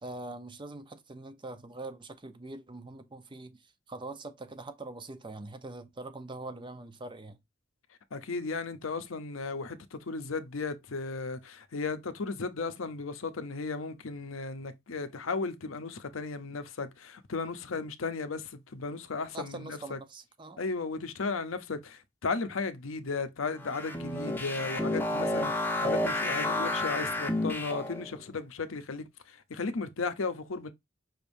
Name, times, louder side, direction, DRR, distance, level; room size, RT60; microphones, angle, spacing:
voice 1, 0.0-3.6 3.9-7.4 17.7-17.9 19.3-20.6, right 2 dB, 25° right, 0.6 m, -43 dB
voice 2, 8.1-20.0 20.6-30.7, left 4 dB, 90° left, 0.7 m, -35 dB
sound 1, 23.6-28.1, left 1 dB, 10° left, 0.8 m, -31 dB
5.6 x 3.4 x 2.6 m
head